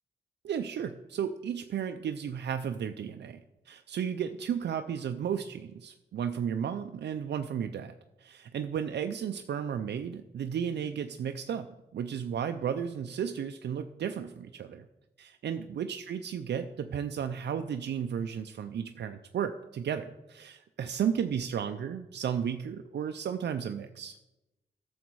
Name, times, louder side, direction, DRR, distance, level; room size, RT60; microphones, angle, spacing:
voice 1, 0.4-3.4 3.7-11.7 11.9-14.9 15.2-24.2, right 8 dB, 75° right, 7 dB, 0.5 m, -34 dB
12.0 x 7.2 x 4.6 m, 0.96 s
wide cardioid pair, 135°, 18 cm